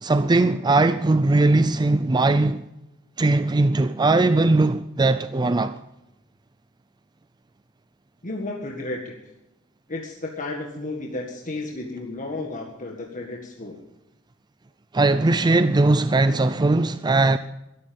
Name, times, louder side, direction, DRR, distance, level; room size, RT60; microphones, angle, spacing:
voice 1, 0.0-2.6 3.2-5.8 14.9-17.4, right 2 dB, 20° right, 0.5 m, -19 dB
voice 2, 8.2-9.2 9.9-13.8, left 2 dB, 35° left, 1.8 m, -33 dB
22.0 x 12.5 x 5.3 m
head